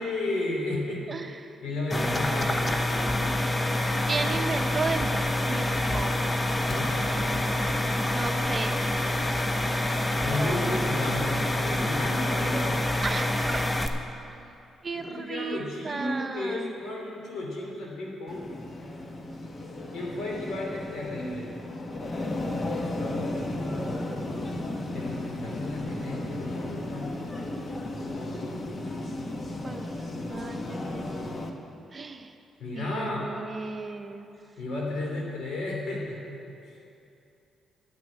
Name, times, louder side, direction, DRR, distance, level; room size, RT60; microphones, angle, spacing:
voice 1, 0.0-1.0 1.6-3.4 6.7-7.5 10.2-12.8 14.9-18.5 19.9-21.5 24.9-27.2 32.6-33.3 34.6-36.3 36.6-36.8, left 2 dB, 75° left, -2 dB, 3.1 m, -33 dB
voice 2, 1.1-1.6 4.0-5.2 5.5-6.3 8.1-8.8 10.2-10.9 13.0-13.7 14.8-16.7 29.6-31.1 31.9-32.4 32.7-34.3, right 4 dB, 35° right, 6 dB, 0.8 m, -34 dB
sound 1, 1.9-13.9, left 1 dB, 20° left, 0.8 m, -27 dB
sound 2, 18.3-31.5, left 2 dB, 40° left, 1.1 m, -34 dB
10.5 x 6.1 x 9.0 m, 2.7 s
cardioid pair, 80°, 0 cm